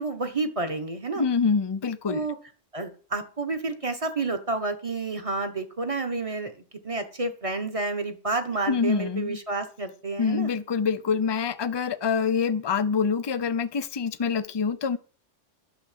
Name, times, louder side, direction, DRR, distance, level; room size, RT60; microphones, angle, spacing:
voice 1, 0.0-1.2 2.1-2.3 2.7-6.5 6.8-10.5, right 3 dB, 30° right, 1.2 m, -30 dB
voice 2, 1.2-2.3 8.7-9.4 10.2-15.0, left 6 dB, 30° left, 0.5 m, -26 dB
10.5 x 6.6 x 7.5 m
omnidirectional pair, 1.3 m